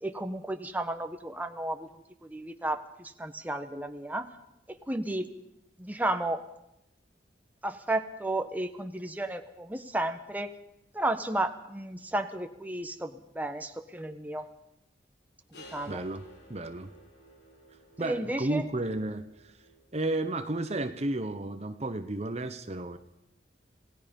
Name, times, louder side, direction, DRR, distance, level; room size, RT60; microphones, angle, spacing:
voice 1, 0.0-1.9 2.2-4.3 4.7-5.3 5.8-6.4 7.6-10.5 10.9-14.5 15.6-16.0 18.0-18.7, right 1 dB, 10° right, 6 dB, 1.3 m, -33 dB
sound 1, 15.5-21.3, equal, 70° left, 5.9 m, -55 dB
voice 2, 15.9-16.2 16.5-16.9 18.0-19.2 19.9-23.0, right 2 dB, 40° right, 9 dB, 1.1 m, -32 dB
27.0 x 18.0 x 5.4 m, 0.82 s
head